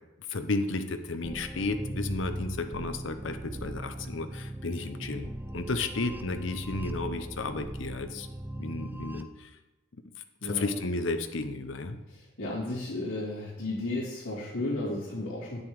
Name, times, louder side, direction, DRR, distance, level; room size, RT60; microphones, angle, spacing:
voice 1, 0.3-8.3 8.6-9.5 10.4-12.0, left 3 dB, 65° left, 8 dB, 0.8 m, -33 dB
sound 1, 1.2-9.2, right 1 dB, 10° right, 0.3 m, -38 dB
voice 2, 12.1-15.6, left 2 dB, 85° left, -12 dB, 2.9 m, -33 dB
8.9 x 6.9 x 4.8 m, 1.0 s
head